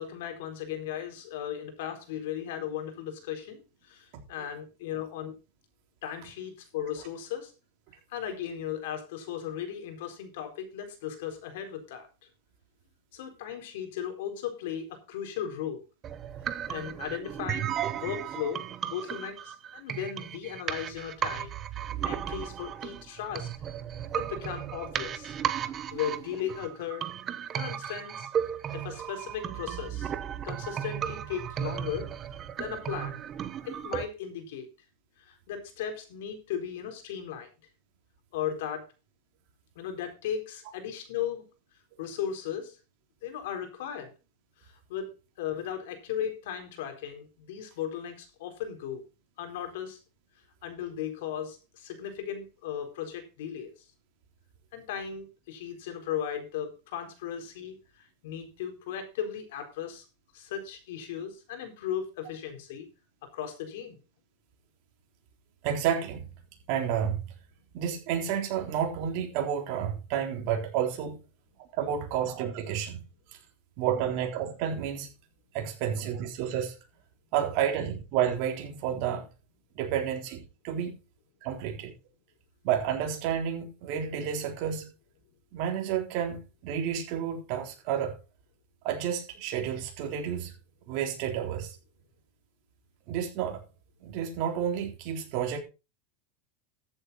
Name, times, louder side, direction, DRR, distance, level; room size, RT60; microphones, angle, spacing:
voice 1, 0.0-5.4 6.0-7.5 8.1-12.1 13.1-15.8 16.7-21.5 22.0-23.5 24.1-25.3 25.9-27.1 27.5-28.3 28.7-30.1 30.4-32.1 32.6-33.2 33.6-34.7 35.2-37.5 38.3-38.9 39.8-41.4 42.0-42.8 43.2-44.1 44.6-45.1 45.4-49.0 49.4-50.0 50.6-53.7 54.7-60.0 60.3-62.9 63.3-63.9, left 9 dB, 70° left, 4.1 m, -36 dB
sound 1, 16.0-34.0, right 9 dB, 25° right, 0.9 m, -35 dB
voice 2, 65.6-66.2 66.7-67.2 67.7-71.2 71.8-73.0 73.8-75.1 75.5-76.7 77.3-79.2 79.8-80.9 81.4-81.9 82.6-84.9 85.5-88.2 88.8-90.5 90.9-91.7 93.1-93.6 94.0-95.6, right 9 dB, 50° right, 3.7 m, -30 dB
14.0 x 8.0 x 4.2 m
supercardioid pair, 155°, 0 cm